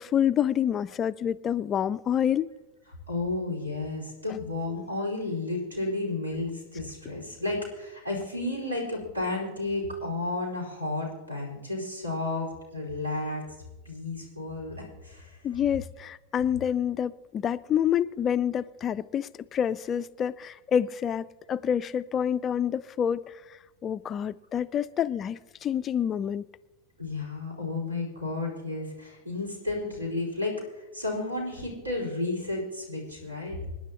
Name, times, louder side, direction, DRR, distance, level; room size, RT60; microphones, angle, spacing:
voice 1, 0.0-2.5 15.4-23.4 23.8-26.4, left 9 dB, 25° left, 0.3 m, -27 dB
voice 2, 3.1-13.4 13.8-14.7 15.0-15.4 27.0-33.6, left 2 dB, 80° right, 4.7 m, -32 dB
26.5 x 10.5 x 3.0 m
figure-of-eight pair, 90°, 0 cm